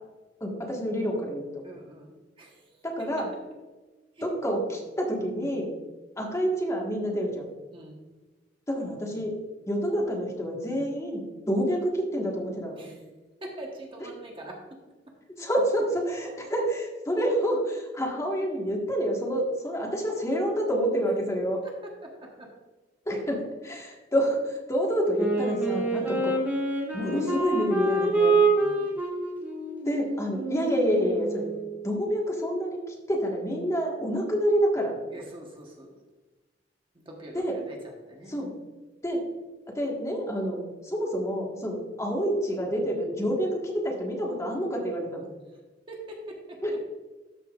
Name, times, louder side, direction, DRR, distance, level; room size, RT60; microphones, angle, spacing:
voice 1, 0.4-1.5 2.8-3.3 4.2-5.7 6.2-7.5 8.7-9.3 9.7-12.9 14.0-14.1 15.4-21.6 23.0-26.5 26.9-28.3 29.8-31.4 31.8-35.0 37.3-37.6 38.3-38.5 39.0-39.2 39.7-40.6 40.8-45.3 46.6-46.8, equal, 15° left, -1 dB, 1.5 m, -28 dB
voice 2, 1.6-2.7 3.0-3.3 4.2-4.3 7.7-8.1 12.8-13.0 13.4-14.6 21.6-22.5 25.9-26.2 28.6-28.9 35.1-35.9 36.9-38.3 45.5-45.6 45.9-46.6, right 1 dB, 30° right, 0 dB, 1.2 m, -44 dB
Wind instrument woodwind instrument, 25.2-31.7, right 3 dB, 10° right, 2.1 m, -27 dB
13.0 x 5.7 x 2.4 m, 1.2 s
head